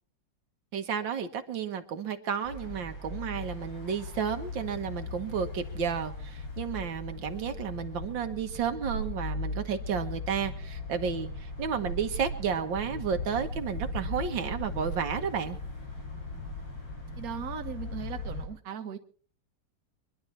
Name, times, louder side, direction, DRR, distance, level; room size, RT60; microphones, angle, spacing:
voice 1, 0.7-15.6, right 7 dB, 80° right, 7 dB, 1.9 m, -32 dB
sound 1, 2.4-18.5, left 2 dB, 80° left, 4.9 m, -38 dB
voice 2, 17.2-19.0, right 7 dB, 55° right, 6 dB, 1.6 m, -38 dB
25.0 x 11.0 x 4.3 m, 0.42 s
omnidirectional pair, 2.0 m